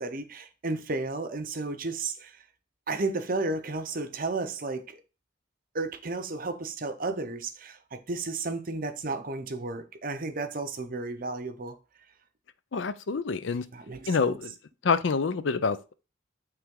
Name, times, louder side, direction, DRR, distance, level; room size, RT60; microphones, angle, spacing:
voice 1, 0.0-2.3 2.9-5.0 5.7-11.8 13.7-14.4, right 3 dB, 45° right, 0.7 m, -33 dB
voice 2, 12.7-13.7 14.1-14.5 14.8-15.9, left 5 dB, 65° left, 0.5 m, -27 dB
8.8 x 3.3 x 3.7 m
head